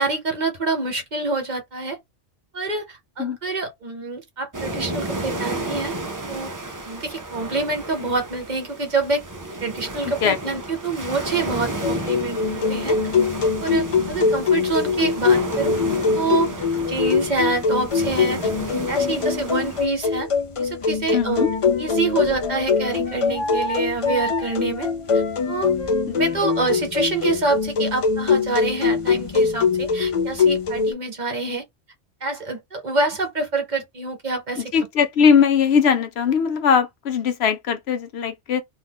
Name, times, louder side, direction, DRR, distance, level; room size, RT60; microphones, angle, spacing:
voice 1, 0.0-2.0 2.5-5.9 6.3-6.5 6.8-9.2 9.6-13.0 13.6-15.8 16.1-16.5 16.9-20.3 20.6-21.5 21.8-24.9 25.1-25.7 26.2-31.6 32.2-34.7, right 3 dB, 45° right, 0.8 m, -26 dB
sound 1, 4.5-19.9, right 1 dB, 25° right, 0.4 m, -32 dB
voice 2, 10.0-10.6 21.1-21.5 26.1-26.2 34.5-38.6, left 7 dB, 65° left, 0.8 m, -20 dB
sound 2, 11.8-30.9, left 5 dB, 50° left, 0.4 m, -22 dB
Wind instrument woodwind instrument, 21.3-26.8, left 2 dB, 85° left, 1.2 m, -32 dB
2.7 x 2.5 x 3.5 m
omnidirectional pair, 1.2 m